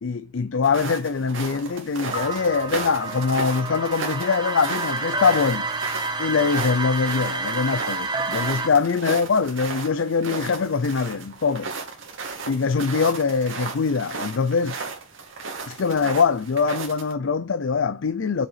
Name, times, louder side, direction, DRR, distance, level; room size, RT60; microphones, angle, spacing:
voice 1, 0.0-5.7 6.2-11.7 12.5-14.8 15.7-18.5, left 5 dB, 70° left, 0.5 m, -23 dB
sound 1, 0.6-17.1, right 4 dB, 75° right, 2.6 m, -35 dB
sound 2, 2.1-8.7, right 3 dB, 20° right, 1.2 m, -29 dB
6.9 x 5.4 x 5.7 m
head